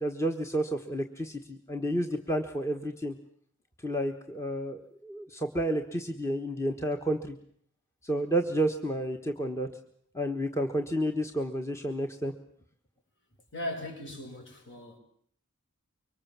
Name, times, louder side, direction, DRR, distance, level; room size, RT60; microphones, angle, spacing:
voice 1, 0.0-3.1 3.8-7.4 8.0-9.7 10.1-12.3, right 1 dB, 15° left, 1.3 m, -31 dB
voice 2, 13.5-15.0, left 1 dB, 55° left, 6.2 m, -38 dB
25.0 x 24.0 x 7.4 m
head